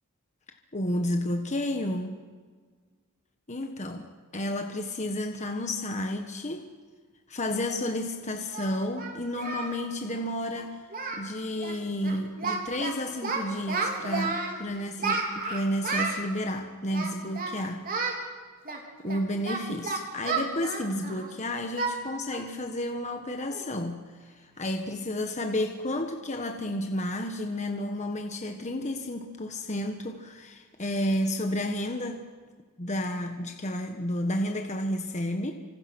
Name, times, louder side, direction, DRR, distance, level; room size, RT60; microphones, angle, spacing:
voice 1, 0.7-2.2 3.5-6.7 7.3-17.9 19.0-32.3 32.8-35.5, left 1 dB, 35° left, 4 dB, 1.4 m, -31 dB
Singing, 7.7-7.8 8.5-9.8 10.0-10.2 10.5-10.7 10.9-11.3 11.6-11.8 12.0-12.9 13.2-14.5 15.0-16.2 16.9-17.5 17.9-18.2 18.7-21.3 21.8-22.0 22.3-22.5 22.9-23.0 23.5-23.8, right 4 dB, 40° right, 3.5 m, -32 dB
29.5 x 26.5 x 6.3 m, 1.5 s
head